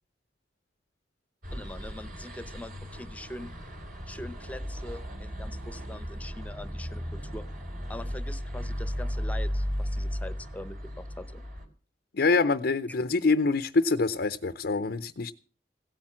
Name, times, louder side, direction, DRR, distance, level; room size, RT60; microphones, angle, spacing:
sound 1, 1.4-11.7, equal, 55° right, 4.2 m, -35 dB
voice 1, 1.5-3.5 4.1-7.5 7.9-11.4, left 1 dB, 10° left, 0.9 m, -43 dB
voice 2, 12.1-15.3, left 3 dB, 65° left, 0.7 m, -25 dB
17.0 x 8.8 x 7.4 m
head